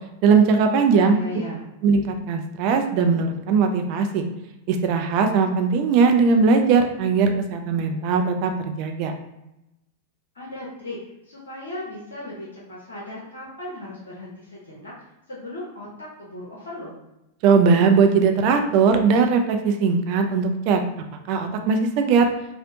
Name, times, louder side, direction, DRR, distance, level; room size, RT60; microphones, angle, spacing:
voice 1, 0.2-1.2 1.8-4.2 4.7-9.1 17.4-20.8 21.3-22.3, right 5 dB, 45° right, 5 dB, 0.3 m, -19 dB
voice 2, 0.9-1.6 10.3-11.0 11.2-14.9 15.3-16.9, left 1 dB, 75° left, -6 dB, 0.7 m, -36 dB
2.7 x 2.0 x 2.6 m, 0.90 s
figure-of-eight pair, 95°, 0 cm